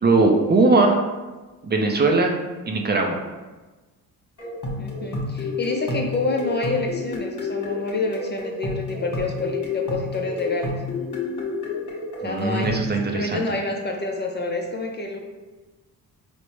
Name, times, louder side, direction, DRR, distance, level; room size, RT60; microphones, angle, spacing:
voice 1, 0.0-1.0 1.6-2.3 2.7-3.2 12.2-13.4, right 3 dB, 30° right, 2 dB, 0.4 m, -19 dB
sound 1, 4.4-12.9, left 3 dB, 50° left, 1.1 m, -30 dB
voice 2, 4.8-10.7 12.2-15.2, left 2 dB, 30° left, 2 dB, 0.4 m, -28 dB
4.6 x 2.1 x 3.0 m, 1.2 s
cardioid pair, 85°, 37 cm